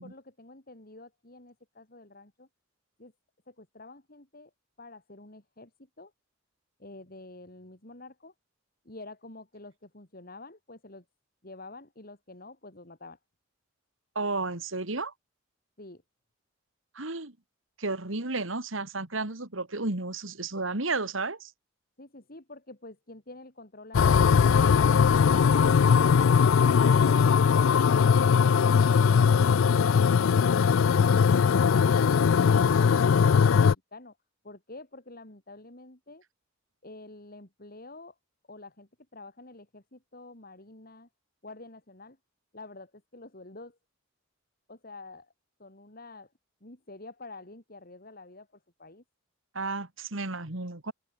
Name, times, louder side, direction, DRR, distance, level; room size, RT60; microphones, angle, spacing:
voice 1, 0.0-2.5 3.0-3.1 3.5-4.5 4.8-6.1 6.8-8.3 8.8-11.0 11.4-13.2 15.8-16.0 22.0-25.6 34.4-36.2 36.8-38.2 38.5-41.1 41.4-42.2 42.5-43.8 44.7-45.3 45.6-46.3 46.6-49.0, left 2 dB, 45° left, 3.1 m, -48 dB
voice 2, 14.1-15.1 16.9-17.3 17.8-21.5 49.5-50.9, right 3 dB, 75° right, 2.7 m, -32 dB
sound 1, 23.9-33.7, left 6 dB, 80° left, 0.4 m, -20 dB
head